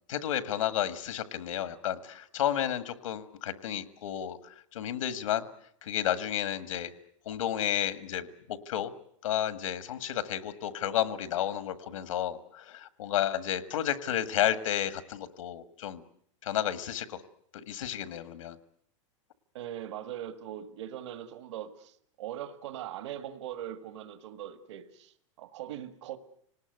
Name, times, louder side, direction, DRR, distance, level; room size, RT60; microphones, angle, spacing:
voice 1, 0.1-5.4 5.8-6.9 7.2-8.9 9.2-16.0 16.4-17.2 17.5-18.6, left 11 dB, 85° left, 12 dB, 1.7 m, -32 dB
voice 2, 19.5-26.2, right 11 dB, 65° right, 11 dB, 1.6 m, -41 dB
27.0 x 19.0 x 7.9 m, 0.65 s
supercardioid pair, 175°, 16 cm